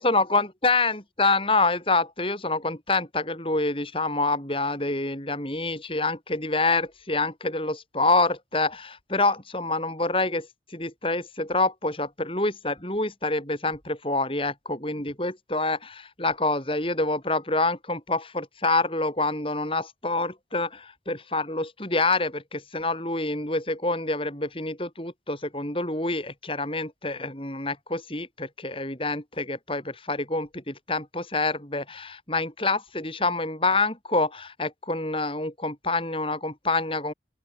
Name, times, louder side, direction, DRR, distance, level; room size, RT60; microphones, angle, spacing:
voice 1, 0.0-37.1, left 3 dB, 30° left, 7.3 m, -27 dB
open air
head